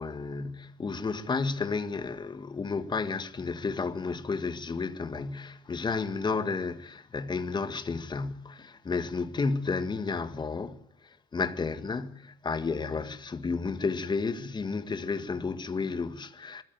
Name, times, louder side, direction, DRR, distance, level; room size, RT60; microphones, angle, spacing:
voice 1, 0.0-10.8 11.0-16.6, left 4 dB, 25° left, 1.8 m, -32 dB
22.5 x 14.5 x 9.5 m
cardioid pair, 110°, 17 cm